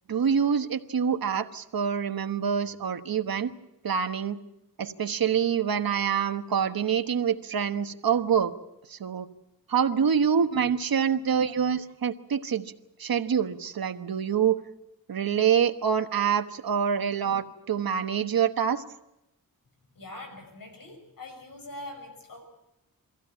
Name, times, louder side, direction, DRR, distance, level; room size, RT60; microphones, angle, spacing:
voice 1, 0.1-3.5 3.8-4.4 4.8-8.5 8.9-9.3 9.7-12.7 13.0-14.6 15.1-18.8, right 7 dB, 75° right, 9 dB, 1.2 m, -26 dB
voice 2, 19.9-22.4, left 2 dB, 70° left, 4 dB, 6.0 m, -43 dB
23.5 x 15.5 x 8.9 m, 0.92 s
wide cardioid pair, 85°, 35 cm